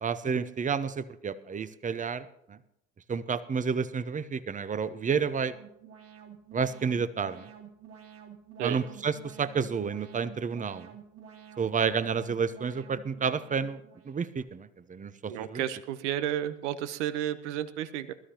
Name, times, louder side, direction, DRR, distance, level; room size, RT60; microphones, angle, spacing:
voice 1, 0.0-2.6 3.1-5.5 6.5-7.5 8.6-10.9 11.6-15.6, right 6 dB, 20° right, 15 dB, 0.8 m, -30 dB
Alarm, 4.6-14.4, right 8 dB, 40° right, 2.7 m, -50 dB
voice 2, 15.3-18.1, right 11 dB, 75° right, 13 dB, 1.0 m, -32 dB
21.5 x 13.0 x 3.0 m, 0.86 s
hypercardioid pair, 70°, 36 cm